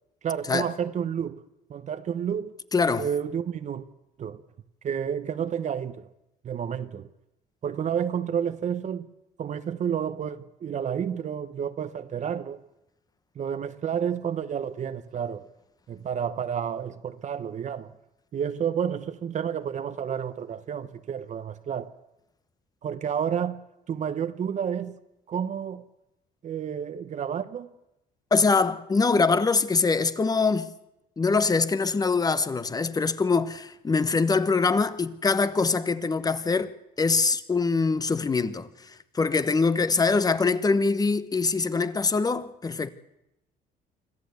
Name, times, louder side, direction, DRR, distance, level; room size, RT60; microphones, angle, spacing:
voice 1, 0.2-1.4 1.7-2.5 3.0-3.9 4.2-4.4 4.8-6.1 6.4-7.1 7.6-9.1 9.4-12.6 13.4-15.4 15.9-17.9 18.3-21.9 22.8-23.6 23.9-25.0 25.3-25.9 26.4-27.7, right 8 dB, 45° right, 1.0 m, -30 dB
voice 2, 2.7-3.1 28.3-30.7 31.2-38.7 39.1-42.9, left 4 dB, 20° left, 1.0 m, -23 dB
25.5 x 14.0 x 8.2 m
cardioid pair, 110°, 17 cm